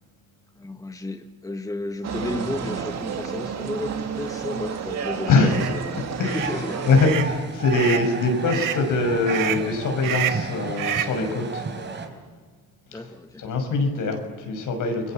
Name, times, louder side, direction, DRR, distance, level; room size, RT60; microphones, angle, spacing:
voice 1, 0.5-6.9 12.9-13.5, left 2 dB, 10° left, 7 dB, 1.5 m, -33 dB
sound 1, 2.0-7.1, right 7 dB, 55° right, 2.4 m, -31 dB
voice 2, 5.3-5.6 6.2-6.4 6.9-11.6 13.4-15.1, left 3 dB, 75° left, 5 dB, 6.1 m, -22 dB
sound 2, 5.4-5.7 6.2-6.5 6.9-7.3 7.7-8.1 8.5-8.8 9.3-9.7 10.0-10.5 10.8-11.2, right 10 dB, 80° right, 1.9 m, -28 dB
sound 3, 6.3-12.0, right 4 dB, 35° right, 4.5 m, -33 dB
29.5 x 22.0 x 7.7 m, 1.5 s
cardioid pair, 120°, 32 cm